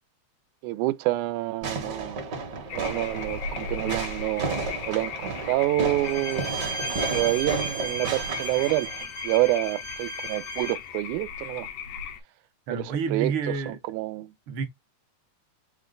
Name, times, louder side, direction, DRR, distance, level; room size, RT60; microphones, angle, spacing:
voice 1, 0.6-2.2 2.7-6.6 7.1-8.9 9.2-11.7 12.7-13.3 13.7-14.3, right 17 dB, 90° right, 2.0 m, -28 dB
Fireworks, 1.6-9.0, right 3 dB, 50° right, 1.3 m, -33 dB
sound 1, 2.7-12.2, left 7 dB, 90° left, 2.2 m, -37 dB
Bowed string instrument, 6.0-10.9, right 4 dB, 65° left, 0.9 m, -36 dB
voice 2, 12.7-13.8 14.5-14.7, right 5 dB, 70° right, 1.2 m, -29 dB
6.0 x 2.2 x 3.7 m
omnidirectional pair, 3.5 m